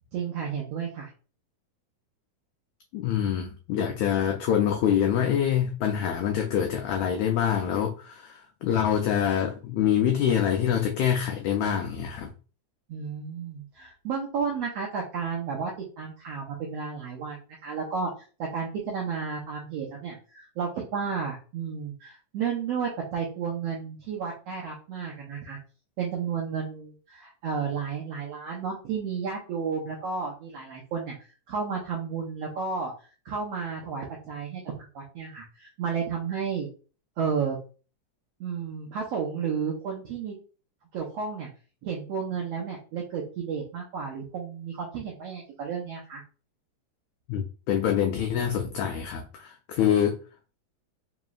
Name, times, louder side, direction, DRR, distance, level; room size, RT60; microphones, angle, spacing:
voice 1, 0.1-1.1 12.9-15.7 16.0-18.1 18.4-25.6 26.0-31.1 31.5-32.9 33.2-36.7 37.2-37.6 38.4-40.3 40.9-41.5 41.8-46.2, right 6 dB, 85° right, 1.4 m, -32 dB
voice 2, 2.9-12.3 47.3-50.2, left 9 dB, 90° left, 1.6 m, -25 dB
5.0 x 3.1 x 2.3 m
omnidirectional pair, 3.8 m